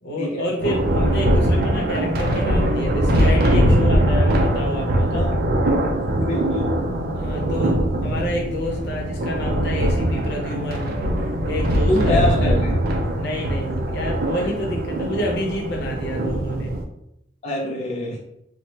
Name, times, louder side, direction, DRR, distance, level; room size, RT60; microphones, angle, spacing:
voice 1, 0.0-5.3 7.1-11.0 11.4-12.6 13.1-16.8, equal, 65° left, 0 dB, 0.7 m, -28 dB
Thunder, 0.6-16.8, right 1 dB, 55° right, 0.4 m, -21 dB
voice 2, 6.2-6.7 11.9-12.8 17.4-18.2, left 1 dB, 35° left, -3 dB, 0.4 m, -25 dB
3.1 x 2.1 x 2.8 m, 0.77 s
head